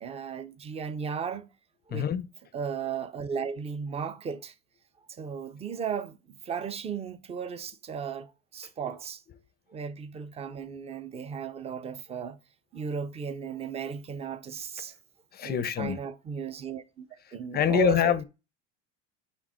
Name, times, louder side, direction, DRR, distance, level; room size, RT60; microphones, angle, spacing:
voice 1, 0.0-1.5 1.9-2.1 2.5-4.5 5.1-9.2 9.7-12.4 12.7-14.9 15.4-17.1 17.3-18.1, right 7 dB, 20° right, 0.5 m, -35 dB
voice 2, 1.9-2.3 15.3-16.0 17.5-18.2, left 9 dB, 30° left, 0.5 m, -25 dB
5.1 x 3.5 x 5.6 m
supercardioid pair, 125°, 34 cm